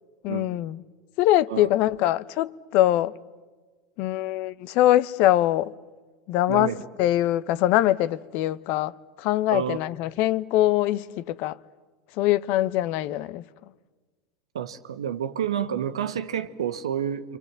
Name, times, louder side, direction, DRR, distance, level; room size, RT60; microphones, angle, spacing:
voice 1, 0.2-0.8 1.2-3.1 4.0-5.7 6.3-11.6 12.2-13.7, left 14 dB, 55° left, 0.8 m, -23 dB
voice 2, 6.5-6.8 9.5-9.8 14.5-17.4, right 9 dB, 85° right, 1.4 m, -29 dB
28.0 x 25.5 x 7.6 m
hypercardioid pair, 90°, 3 cm